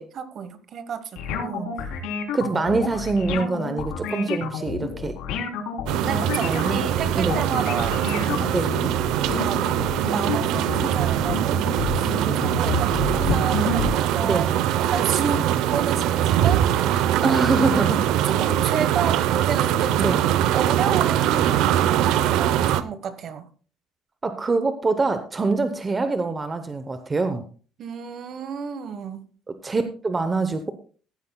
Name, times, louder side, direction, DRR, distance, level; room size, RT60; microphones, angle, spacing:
voice 1, 0.0-1.9 6.0-8.7 9.3-9.7 10.1-12.2 12.4-14.5 14.8-17.4 18.2-20.2 20.5-23.5 27.8-29.3, right 7 dB, 40° right, 11 dB, 1.1 m, -31 dB
sound 1, 1.2-13.9, left 5 dB, 85° left, 3.2 m, -29 dB
voice 2, 2.3-5.1 6.4-6.8 7.2-7.4 8.5-8.8 12.3-12.4 14.2-14.5 17.2-18.0 20.0-20.2 24.2-27.4 29.5-30.7, right 3 dB, 15° right, 8 dB, 0.7 m, -24 dB
sound 2, 5.9-22.8, right 11 dB, 75° right, 0.7 m, -22 dB
15.0 x 12.0 x 2.2 m, 0.40 s
cardioid pair, 165°, 0 cm